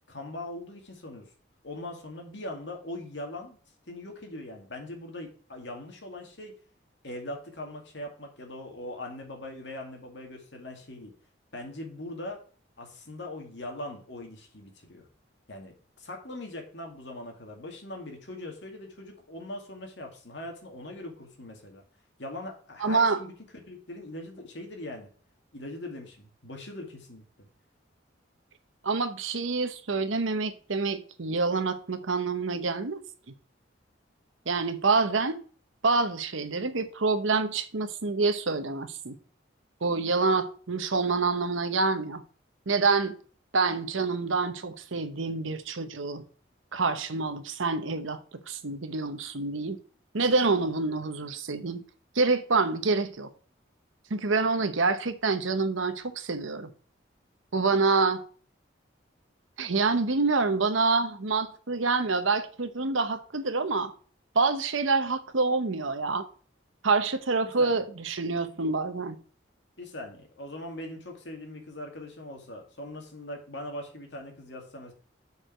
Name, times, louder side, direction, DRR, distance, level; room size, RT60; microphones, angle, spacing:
voice 1, 0.1-1.3 1.6-3.6 3.9-6.5 7.0-11.1 11.5-12.4 12.8-15.1 15.5-21.8 22.2-23.3 23.7-25.1 25.5-27.2 67.4-67.8 69.8-74.9, left 1 dB, 65° left, 2.2 m, -41 dB
voice 2, 22.8-23.2 28.8-33.0 34.5-35.4 35.8-39.2 39.8-42.2 42.7-43.2 43.5-46.2 46.7-48.2 48.5-49.8 50.1-51.8 52.1-53.3 54.1-56.7 57.5-58.2 59.6-63.9 64.3-66.3 66.8-69.2, right 4 dB, 80° right, 0.9 m, -27 dB
6.7 x 4.9 x 6.0 m
head